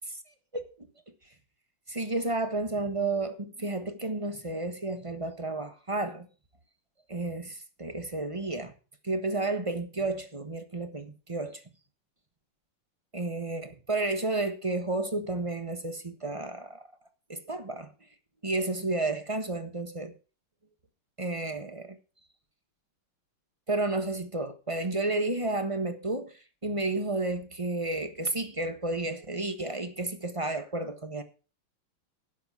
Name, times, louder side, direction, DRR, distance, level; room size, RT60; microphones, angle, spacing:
voice 1, 0.5-0.9 1.9-6.3 7.1-8.7 9.0-11.6 13.1-16.8 17.3-17.9 18.4-20.1 21.2-22.0 23.7-31.2, right 2 dB, 20° right, 1.0 m, -31 dB
11.5 x 7.5 x 6.0 m
omnidirectional pair, 2.4 m